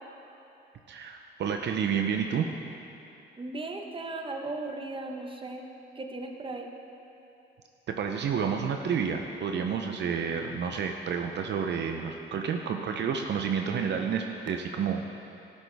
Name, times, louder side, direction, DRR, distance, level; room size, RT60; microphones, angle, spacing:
voice 1, 0.9-2.5 7.9-15.0, right 7 dB, 60° right, 4 dB, 0.7 m, -30 dB
voice 2, 3.4-5.7 6.0-6.7, right 2 dB, 25° right, 3 dB, 1.1 m, -37 dB
13.0 x 11.5 x 3.5 m, 2.9 s
cardioid pair, 90°, 20 cm